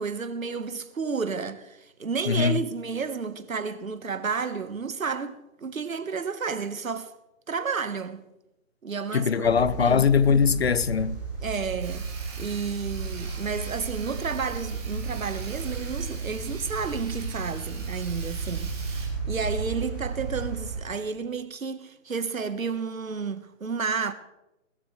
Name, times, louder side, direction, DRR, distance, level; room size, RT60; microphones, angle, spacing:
voice 1, 0.0-7.1 7.5-8.3 8.8-10.0 11.4-12.1 12.4-19.0 19.3-24.1, right 5 dB, 85° right, 1.5 m, -31 dB
voice 2, 2.3-2.6 9.1-11.2, left 6 dB, 50° left, 0.6 m, -21 dB
sound 1, 9.4-20.8, right 5 dB, 10° left, 3.6 m, -34 dB
Sawing, 11.8-19.1, right 5 dB, 20° right, 2.9 m, -44 dB
20.0 x 14.0 x 3.3 m
hypercardioid pair, 165°, 40 cm